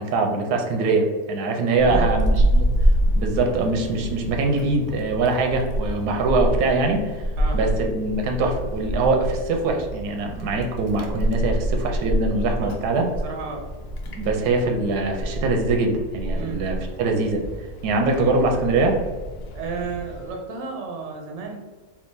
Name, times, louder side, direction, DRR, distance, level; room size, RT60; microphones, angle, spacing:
voice 1, 0.0-2.7 3.2-13.1 14.1-17.4 17.8-19.0, right 3 dB, 90° right, 3 dB, 1.2 m, -23 dB
voice 2, 1.7-2.1 7.4-7.6 12.6-12.8 13.2-13.7 16.4-16.6 19.5-21.6, right 4 dB, 60° right, 2 dB, 0.8 m, -32 dB
Wind, 1.8-20.3, equal, 90° left, 0.5 m, -27 dB
3.6 x 2.8 x 2.6 m, 1.4 s
omnidirectional pair, 1.6 m